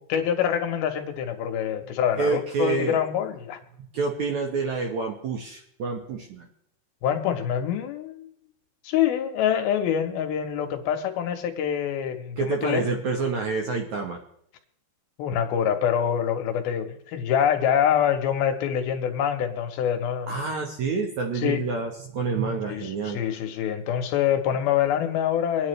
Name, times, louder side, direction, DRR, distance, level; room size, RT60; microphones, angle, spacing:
voice 1, 0.1-3.6 7.0-8.3 8.8-12.8 15.2-20.4 21.4-21.6 22.7-25.7, left 9 dB, 75° left, 5 dB, 2.8 m, -25 dB
voice 2, 2.2-3.0 3.8-6.5 12.4-14.2 20.3-23.2, right 4 dB, 65° right, 2 dB, 2.0 m, -28 dB
25.5 x 9.6 x 3.2 m, 0.71 s
omnidirectional pair, 4.6 m